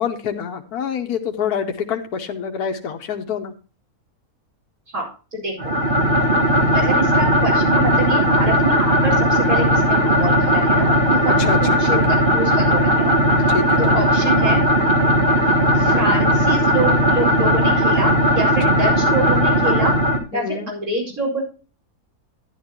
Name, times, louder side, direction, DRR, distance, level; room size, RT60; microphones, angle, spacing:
voice 1, 0.0-3.5 11.4-12.0 13.5-13.8 15.8-16.3 20.3-20.7, left 7 dB, 90° left, 5 dB, 1.5 m, -26 dB
voice 2, 4.9-5.7 6.7-13.1 13.8-14.6 15.7-19.9 20.3-21.4, right 1 dB, 70° right, -3 dB, 5.5 m, -26 dB
sound 1, 5.6-20.2, equal, 35° right, 1.6 m, -17 dB
11.5 x 10.5 x 2.9 m, 0.34 s
omnidirectional pair, 1.6 m